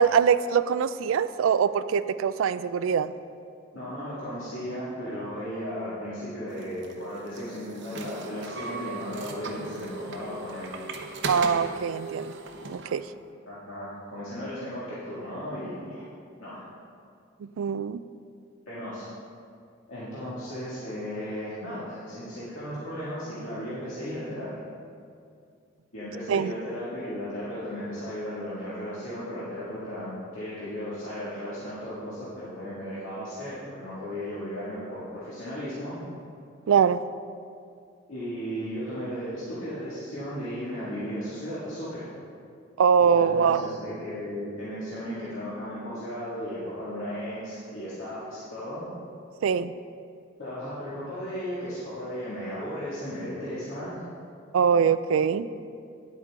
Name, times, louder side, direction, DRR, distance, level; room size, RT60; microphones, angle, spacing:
voice 1, 0.0-3.1 11.2-12.3 12.7-13.0 17.4-18.0 26.3-26.5 36.7-37.0 42.8-43.7 49.4-49.7 54.5-55.5, right 7 dB, 75° right, 15 dB, 0.3 m, -23 dB
voice 2, 3.7-10.7 13.5-16.0 16.4-16.6 18.7-19.1 19.9-24.5 25.9-36.0 38.1-42.1 43.0-48.8 50.4-54.1, equal, 75° left, -11 dB, 2.1 m, -35 dB
sound 1, 6.6-13.0, right 3 dB, 60° right, 0.8 m, -37 dB
10.5 x 8.2 x 3.7 m, 2.3 s
head